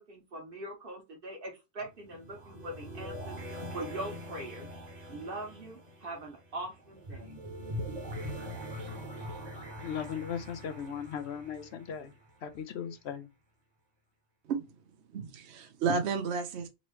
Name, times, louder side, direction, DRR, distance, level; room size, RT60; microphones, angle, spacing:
voice 1, 0.0-4.7 5.1-7.4, right 1 dB, 55° right, 1.5 m, -42 dB
sound 1, 1.8-12.6, equal, 40° right, 1.3 m, -43 dB
voice 2, 9.8-12.1 12.4-13.3, left 8 dB, 75° left, 0.9 m, -37 dB
voice 3, 14.4-14.8 15.1-16.7, right 5 dB, 75° right, 0.9 m, -32 dB
3.9 x 3.0 x 3.0 m
omnidirectional pair, 1.1 m